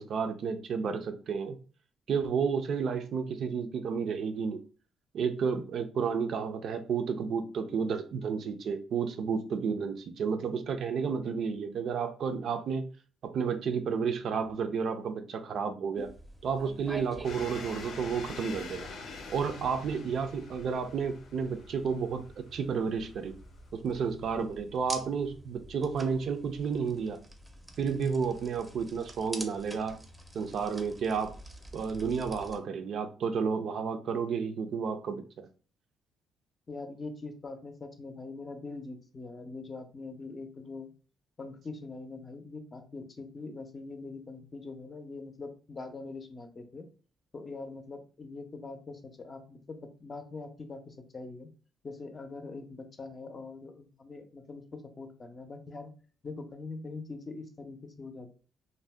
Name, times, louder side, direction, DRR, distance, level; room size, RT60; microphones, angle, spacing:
voice 1, 0.0-1.6 2.1-4.6 5.1-12.8 13.2-16.1 16.4-18.9 19.3-23.4 23.7-27.2 27.8-30.0 30.3-31.3 31.7-35.5, right 6 dB, 65° right, 8 dB, 0.4 m, -31 dB
sound 1, 15.9-32.6, right 1 dB, 10° right, 0.5 m, -48 dB
sound 2, 17.2-23.7, left 4 dB, 80° left, 0.6 m, -46 dB
voice 2, 36.7-40.9 41.4-46.9 47.3-51.5 51.8-55.9 56.2-58.3, left 3 dB, 35° left, 7 dB, 0.5 m, -43 dB
2.6 x 2.1 x 3.3 m, 0.38 s
cardioid pair, 90°, 0 cm